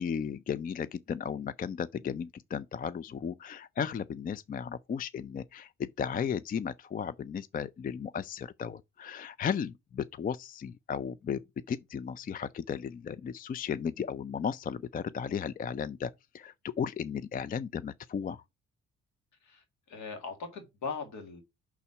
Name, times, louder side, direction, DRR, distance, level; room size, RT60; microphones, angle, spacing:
voice 1, 0.0-11.4 11.7-18.4, left 7 dB, 30° left, 0.4 m, -35 dB
voice 2, 19.4-21.4, left 5 dB, 70° left, 1.9 m, -40 dB
5.9 x 4.2 x 5.6 m
cardioid pair, 90°, 30 cm